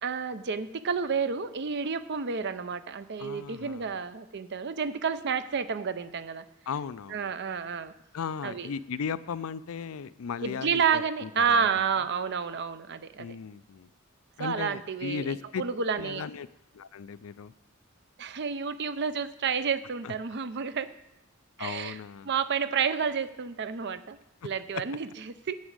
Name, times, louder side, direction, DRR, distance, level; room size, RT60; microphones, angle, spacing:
voice 1, 0.0-6.4 7.1-7.9 8.4-8.7 10.4-13.4 14.4-16.3 18.2-20.9 21.6-22.0 22.2-24.2 24.4-25.6, right 6 dB, 55° right, 13 dB, 0.6 m, -30 dB
voice 2, 3.2-3.9 6.7-7.3 8.1-11.7 13.2-13.9 14.4-15.6 16.0-16.5 16.7-17.5 20.0-20.1 21.6-22.3, left 6 dB, 85° left, 15 dB, 0.4 m, -36 dB
9.6 x 6.1 x 8.1 m, 0.93 s
head